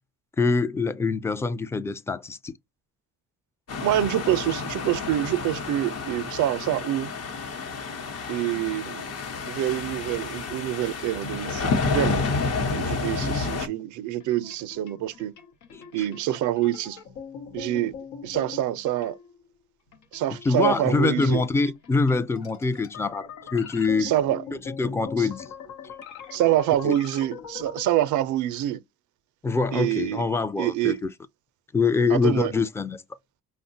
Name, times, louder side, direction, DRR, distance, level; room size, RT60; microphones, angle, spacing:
voice 1, 0.4-2.5 13.2-13.5 15.7-16.1 20.4-24.1 24.7-25.5 26.8-27.0 29.4-31.1 31.7-33.0, left 4 dB, 10° left, 0.3 m, -25 dB
sound 1, 3.7-13.7, left 4 dB, 55° left, 0.8 m, -30 dB
voice 2, 3.8-7.1 8.3-9.1 9.5-12.3 12.6-15.3 15.9-17.0 17.5-17.9 18.2-19.2 20.1-21.4 24.0-24.4 25.2-25.3 26.3-28.8 29.7-30.2 30.6-31.0 32.1-32.5, right 13 dB, 75° right, 0.5 m, -26 dB
sound 2, 10.7-13.7 14.2-19.5 19.9-27.8, left 7 dB, 85° left, 0.8 m, -43 dB
5.3 x 2.1 x 2.6 m
cardioid pair, 90°, 30 cm